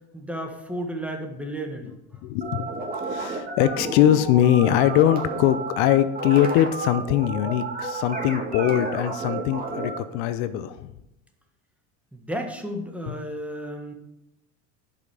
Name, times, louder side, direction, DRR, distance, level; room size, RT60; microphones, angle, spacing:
voice 1, 0.1-1.9 12.1-13.9, equal, 5° right, 3 dB, 1.6 m, -33 dB
voice 2, 2.2-2.7 3.1-10.9 13.1-13.2, left 11 dB, 70° left, 12 dB, 0.7 m, -22 dB
sound 1, 2.4-10.0, right 3 dB, 25° right, 2.1 m, -31 dB
10.5 x 5.8 x 4.9 m, 0.91 s
supercardioid pair, 105°, 34 cm